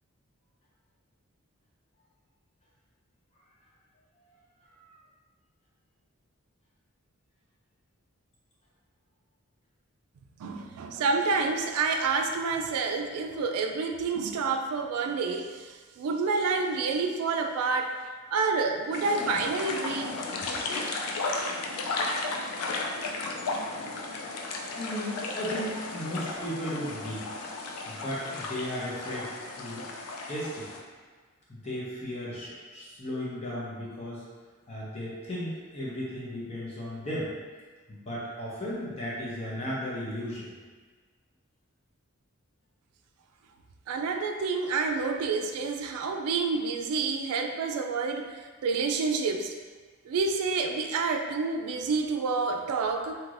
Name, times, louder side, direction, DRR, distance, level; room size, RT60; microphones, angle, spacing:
voice 1, 10.4-18.0 18.3-20.1 21.4-21.6 43.9-49.5 50.1-53.2, right 4 dB, 90° right, 4 dB, 0.3 m, -28 dB
sound 1, 18.9-30.8, left 3 dB, 85° left, 0.4 m, -34 dB
voice 2, 24.7-27.3 27.9-29.9 30.3-30.7 31.5-34.2 34.7-37.3 37.9-40.5, equal, 30° left, -7 dB, 0.8 m, -35 dB
3.1 x 2.9 x 2.5 m, 1.4 s
head